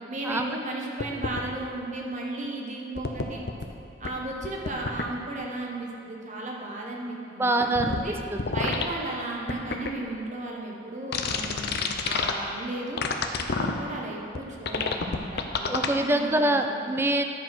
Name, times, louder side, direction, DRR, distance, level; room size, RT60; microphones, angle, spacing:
voice 1, 0.1-3.4 4.0-8.2 8.5-11.7 12.0-13.0 13.6-16.6, right 2 dB, 40° right, -1 dB, 1.2 m, -35 dB
sound 1, 1.0-1.4 3.0-3.6 4.0-4.1 4.4-5.0 7.8-8.0 8.4-8.9 9.5-9.9 11.1-12.3 13.0-13.7 14.4-14.5 14.7-15.9, left 4 dB, 55° left, 0.6 m, -28 dB
voice 2, 7.4-8.5 15.7-17.2, right 1 dB, 10° right, 5 dB, 0.4 m, -25 dB
10.5 x 4.7 x 6.0 m, 2.5 s
head